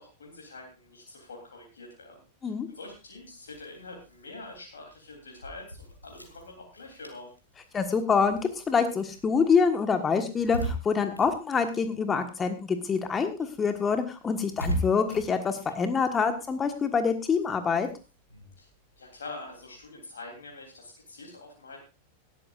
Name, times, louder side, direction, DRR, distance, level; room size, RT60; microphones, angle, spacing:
voice 1, 0.0-7.3 18.6-18.7 19.0-21.9, left 2 dB, 70° left, 0 dB, 3.3 m, -45 dB
sound 1, 2.7-12.6 12.9-19.8, equal, 85° left, 2.4 m, -41 dB
voice 2, 7.7-17.9, left 5 dB, 20° left, 8 dB, 1.4 m, -26 dB
18.5 x 13.0 x 2.5 m, 0.29 s
figure-of-eight pair, 90°, 0 cm